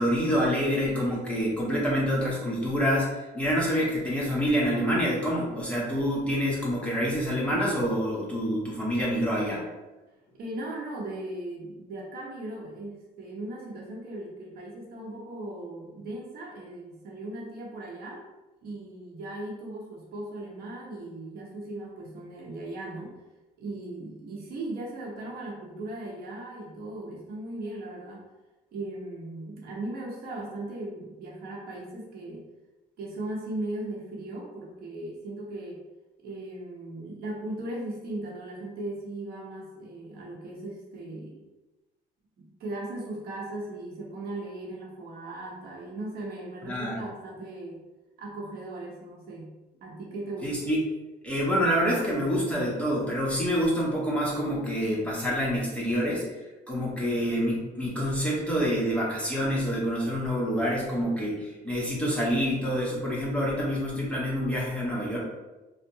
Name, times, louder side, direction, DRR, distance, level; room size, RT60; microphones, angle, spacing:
voice 1, 0.0-9.6 46.7-47.0 50.4-50.8 51.2-56.2 56.7-65.2, equal, 5° left, -5 dB, 0.7 m, -27 dB
voice 2, 10.3-18.2 18.6-23.2 23.6-28.2 28.7-32.4 33.0-35.8 36.2-41.4 42.4-47.8 48.2-49.5 49.8-50.5, right 2 dB, 65° right, -3 dB, 0.8 m, -38 dB
2.7 x 2.0 x 2.6 m, 1.1 s
cardioid pair, 110°, 17 cm